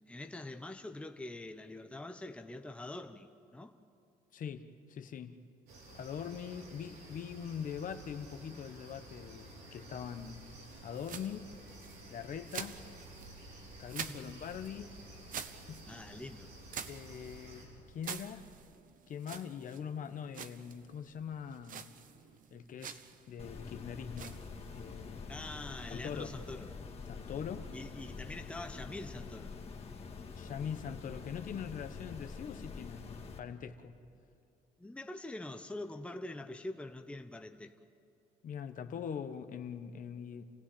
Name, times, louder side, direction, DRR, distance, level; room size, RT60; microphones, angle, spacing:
voice 1, 0.0-3.8 14.0-14.4 15.8-16.5 25.3-26.7 27.7-29.6 34.8-37.7, left 2 dB, 5° left, 1.0 m, -44 dB
voice 2, 4.3-5.4 5.9-10.4 10.8-11.5 12.1-12.8 13.8-15.0 15.4-15.8 16.9-18.5 19.1-21.9 22.5-23.0 23.3-25.4 25.9-26.4 27.1-27.7 30.3-34.0 38.4-40.4, left 7 dB, 50° left, 1.3 m, -42 dB
sound 1, 5.7-17.7, right 1 dB, 85° right, 6.3 m, -52 dB
sound 2, 9.9-27.2, right 8 dB, 55° right, 1.1 m, -49 dB
sound 3, 23.4-33.4, left 5 dB, 35° left, 2.1 m, -46 dB
28.5 x 16.0 x 8.7 m
cardioid pair, 110°, 17 cm